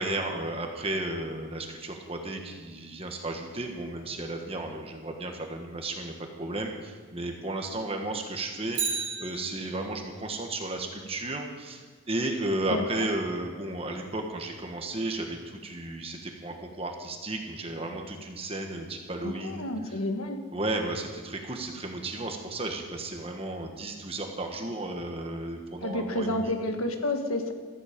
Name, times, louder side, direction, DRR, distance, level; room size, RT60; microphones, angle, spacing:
voice 1, 0.0-20.0 20.5-26.5, right 2 dB, 25° right, 3 dB, 1.4 m, -34 dB
Bicycle, 8.7-10.1 18.4-18.5, right 5 dB, 60° right, 2.8 m, -33 dB
voice 2, 12.7-13.0 19.2-20.4 25.8-27.5, left 1 dB, 85° left, 5 dB, 1.6 m, -30 dB
15.5 x 14.0 x 5.2 m, 1.5 s
head